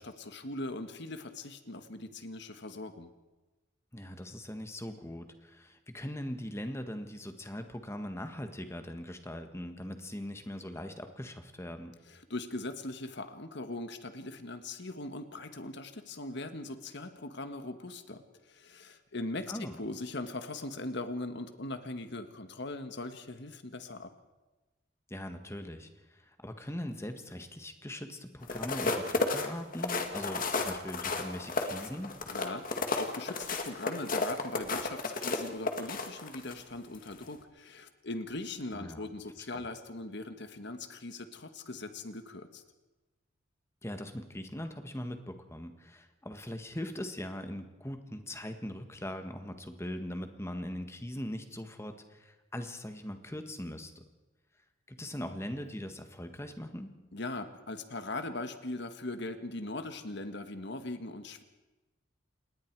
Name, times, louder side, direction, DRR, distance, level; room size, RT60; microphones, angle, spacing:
voice 1, 0.0-3.1 12.1-24.1 32.3-42.6 57.1-61.4, left 2 dB, 60° left, 8 dB, 1.6 m, -40 dB
voice 2, 3.9-12.0 19.5-19.7 25.1-32.1 38.7-39.0 39.5-39.7 43.8-54.0 54.9-56.9, left 1 dB, 15° left, 7 dB, 1.6 m, -41 dB
sound 1, 28.4-36.6 37.1-37.3, left 3 dB, 45° left, 2.1 m, -33 dB
28.0 x 20.5 x 4.7 m, 1.1 s
head